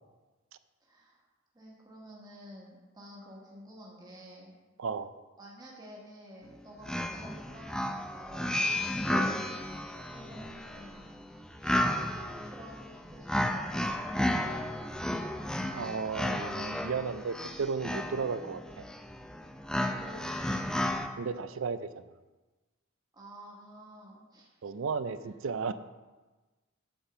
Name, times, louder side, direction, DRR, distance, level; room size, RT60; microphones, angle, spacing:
voice 1, 0.8-1.2 1.5-4.5 5.4-8.7 10.0-11.0 11.6-14.0 19.9-20.6 23.1-24.7, equal, 20° right, -3 dB, 1.4 m, -50 dB
voice 2, 4.8-5.1 9.1-9.3 15.7-18.8 21.2-22.0 24.6-25.7, right 5 dB, 70° right, 13 dB, 0.5 m, -34 dB
sound 1, 6.5-6.6 6.8-21.1, left 1 dB, 5° left, 0.4 m, -33 dB
9.1 x 4.4 x 6.8 m, 1.2 s
head